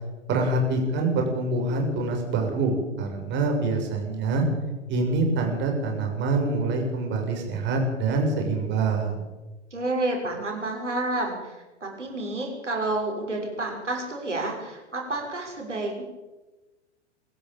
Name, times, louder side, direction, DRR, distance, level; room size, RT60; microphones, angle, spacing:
voice 1, 0.3-4.4 4.9-9.2, right 3 dB, 30° right, 2 dB, 6.9 m, -25 dB
voice 2, 9.7-11.5 11.8-16.0, right 2 dB, 80° right, 0 dB, 6.5 m, -29 dB
23.0 x 14.0 x 9.0 m, 1.2 s
figure-of-eight pair, 100°, 35 cm